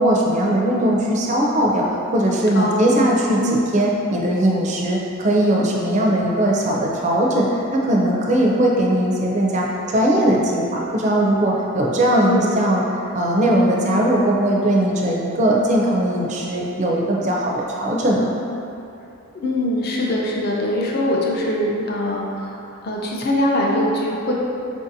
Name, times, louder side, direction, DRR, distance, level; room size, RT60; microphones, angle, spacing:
voice 1, 0.0-3.4 3.7-12.8 13.1-18.3, right 1 dB, 35° right, -2 dB, 0.4 m, -19 dB
voice 2, 2.5-3.1 3.4-3.6 12.2-12.5 19.3-22.6 22.8-24.3, left 1 dB, 45° left, -2 dB, 0.5 m, -22 dB
4.8 x 2.6 x 2.6 m, 2.7 s
head